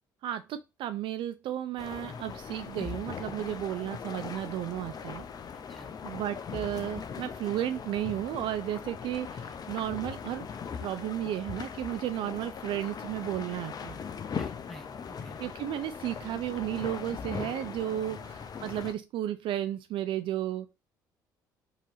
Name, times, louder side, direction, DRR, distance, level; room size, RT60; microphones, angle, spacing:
voice 1, 0.2-5.2 6.0-10.5 10.8-14.0 15.4-20.7, right 12 dB, 55° right, 0.4 m, -33 dB
sound 1, 1.8-18.9, left 6 dB, 40° left, 0.6 m, -40 dB
voice 2, 5.5-6.0 14.3-15.4 18.1-18.2, equal, ahead, 0.8 m, -50 dB
4.0 x 2.8 x 2.7 m
hypercardioid pair, 50°, 10 cm